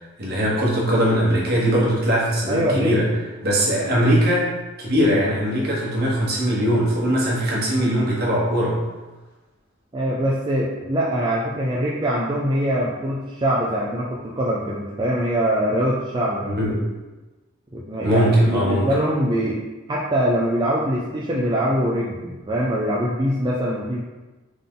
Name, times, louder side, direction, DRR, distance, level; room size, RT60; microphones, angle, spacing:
voice 1, 0.0-3.1 3.4-4.5 4.8-8.8 16.4-16.7 18.0-18.9, equal, 50° right, -4 dB, 1.3 m, -20 dB
voice 2, 2.5-3.2 9.9-16.9 17.7-19.6 19.9-24.0, equal, 20° right, -5 dB, 0.5 m, -23 dB
3.9 x 3.7 x 3.7 m, 1.2 s
head